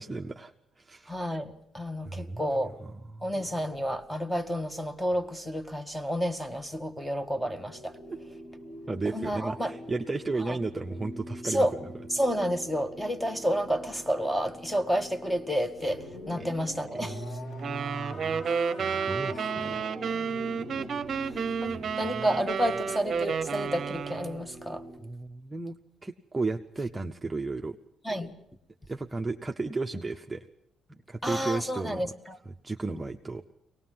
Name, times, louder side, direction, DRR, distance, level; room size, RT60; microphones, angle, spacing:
voice 1, 0.0-1.1 2.0-3.3 8.9-11.7 16.4-16.5 16.9-19.8 21.7-22.3 25.0-27.8 28.9-30.5 31.1-32.1 32.6-33.4, right 3 dB, 15° right, 0.8 m, -34 dB
voice 2, 1.1-2.8 3.2-8.0 9.1-9.7 10.4-10.6 11.4-11.7 12.1-17.2 20.8-20.9 21.2-24.8 28.0-28.4 31.2-32.4, equal, 5° left, 1.4 m, -30 dB
sound 1, 7.3-25.0, equal, 55° left, 4.9 m, -46 dB
sound 2, 15.7-21.7, left 2 dB, 80° left, 3.7 m, -45 dB
sound 3, 17.6-24.4, right 6 dB, 50° right, 0.9 m, -31 dB
23.5 x 18.5 x 7.5 m
cardioid pair, 90°, 0 cm